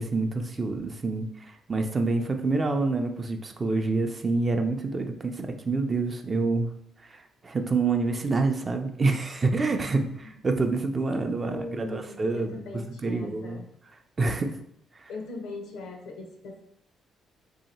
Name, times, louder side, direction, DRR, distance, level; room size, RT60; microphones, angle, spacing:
voice 1, 0.0-6.7 7.0-12.5 13.0-13.6 14.2-14.6 15.0-15.1, right 3 dB, 30° right, 5 dB, 0.5 m, -27 dB
voice 2, 11.4-13.7 15.1-16.6, left 2 dB, 85° left, 3 dB, 0.7 m, -39 dB
2.9 x 2.8 x 4.1 m, 0.70 s
cardioid pair, 90°, 0 cm